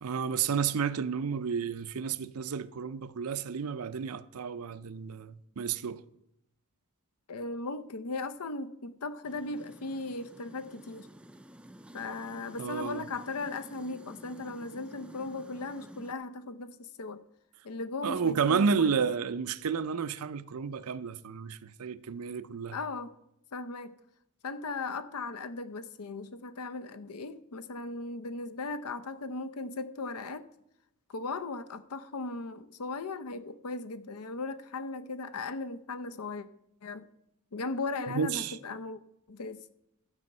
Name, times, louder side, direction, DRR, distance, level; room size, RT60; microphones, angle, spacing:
voice 1, 0.0-6.0 12.6-13.0 18.0-22.8 38.1-38.6, right 6 dB, 75° right, 0.5 m, -31 dB
voice 2, 7.3-11.1 11.9-17.2 17.6-19.0 22.7-23.1 23.5-23.9 24.4-30.5 31.1-36.5 36.8-37.0 37.5-39.0 39.3-39.6, left 3 dB, 85° left, 0.7 m, -37 dB
sound 1, 9.2-16.1, equal, 5° right, 0.4 m, -51 dB
12.5 x 7.7 x 5.4 m
head